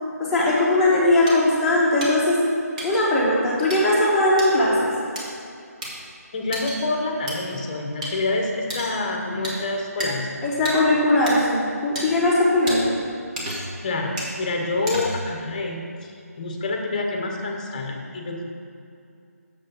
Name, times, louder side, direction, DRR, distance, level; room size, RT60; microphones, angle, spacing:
voice 1, 0.2-2.4 2.8-4.9 10.4-13.0, left 1 dB, 5° left, -9 dB, 1.2 m, -19 dB
sound 1, 1.3-1.4 2.0-2.1 2.8-3.0 3.7-3.8 4.4-4.5 5.2-5.3 5.8-5.9 6.5-6.8 7.3-7.4 8.0-8.1 8.7-9.0 9.4-9.6 10.0-10.1 10.7-10.8 11.3-11.4 12.0-12.1 12.7-12.8 13.4-13.8 14.2-14.3 14.9-15.3, right 1 dB, 25° right, 1.8 m, -31 dB
voice 2, 6.3-10.3 13.5-15.8 16.4-18.4, left 2 dB, 30° left, 2 dB, 1.0 m, -27 dB
6.9 x 5.4 x 7.1 m, 2.5 s
figure-of-eight pair, 165°, 9 cm